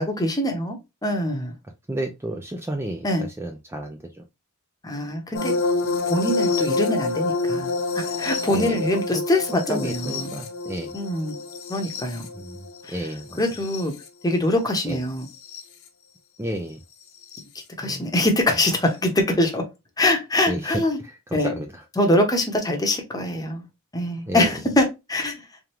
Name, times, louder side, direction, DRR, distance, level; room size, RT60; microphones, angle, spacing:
voice 1, 0.0-1.5 3.0-3.3 4.8-5.6 6.1-10.3 10.9-11.4 11.7-12.3 12.8-12.9 13.4-13.9 14.2-15.3 17.8-19.6 20.0-21.0 21.3-21.5 22.0-23.6 23.9-25.4, left 1 dB, 15° left, 1.0 m, -23 dB
voice 2, 1.9-4.2 8.5-9.2 9.5-10.9 12.3-13.4 14.9-15.0 16.4-16.8 17.8-18.1 20.5-20.7 21.0-21.8 24.3-24.5, right 1 dB, 10° right, 0.4 m, -32 dB
sound 1, 5.3-14.0 15.3-15.6 17.3-17.4, left 3 dB, 60° left, 0.9 m, -27 dB
3.6 x 3.4 x 2.9 m
head